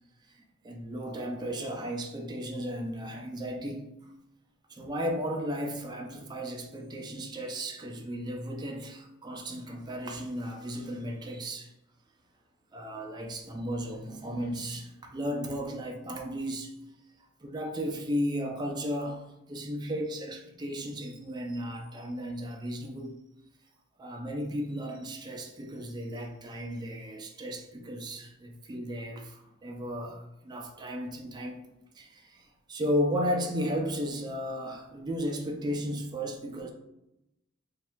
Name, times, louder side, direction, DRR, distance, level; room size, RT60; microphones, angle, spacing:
voice 1, 0.3-4.1 4.7-11.7 12.7-16.7 17.4-23.2 24.0-31.6 31.9-36.7, equal, 20° right, 0.4 m, -34 dB
2.8 x 2.6 x 3.3 m
head